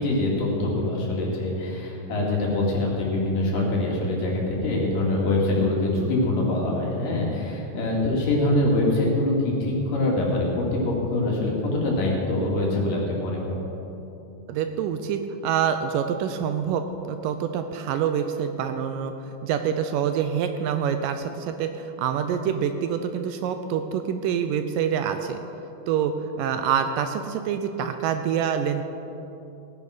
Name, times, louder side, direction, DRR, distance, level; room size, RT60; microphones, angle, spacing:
voice 1, 0.0-13.6, left 2 dB, 65° left, -3 dB, 4.0 m, -24 dB
voice 2, 14.5-19.1 19.4-25.4 25.9-28.8, right 8 dB, 80° right, 8 dB, 2.1 m, -26 dB
17.5 x 10.5 x 5.1 m, 2.9 s
omnidirectional pair, 4.2 m